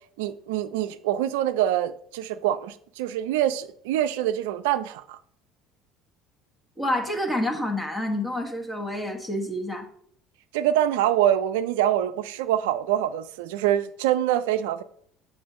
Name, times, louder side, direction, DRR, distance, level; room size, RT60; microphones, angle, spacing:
voice 1, 0.2-5.2 10.5-14.8, right 11 dB, 70° right, 0.4 m, -25 dB
voice 2, 6.8-9.9, left 1 dB, 10° left, 1.3 m, -28 dB
7.7 x 3.8 x 4.9 m
hypercardioid pair, 65°, 0 cm